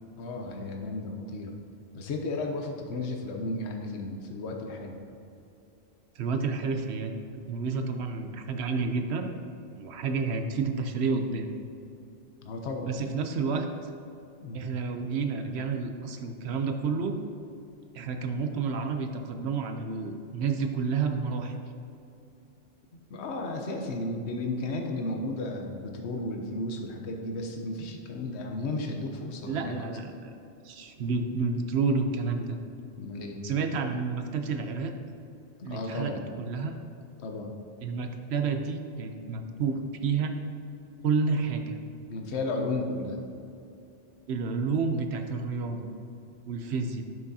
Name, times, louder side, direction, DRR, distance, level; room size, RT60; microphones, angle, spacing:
voice 1, 0.2-1.5 1.9-5.0 12.4-12.9 14.4-14.6 23.1-29.9 33.0-33.4 35.6-36.2 37.2-37.5 42.1-43.2, left 2 dB, 65° left, 2 dB, 1.1 m, -34 dB
voice 2, 6.2-7.1 7.5-9.4 9.7-11.5 12.8-13.7 14.5-17.2 17.9-21.6 29.5-30.4 30.6-32.6 33.4-34.9 35.6-36.1 36.4-36.8 37.8-40.3 41.0-41.8 44.3-45.9 46.5-47.0, right 4 dB, 65° right, 6 dB, 0.9 m, -30 dB
10.5 x 6.0 x 2.7 m, 2.7 s
omnidirectional pair, 1.2 m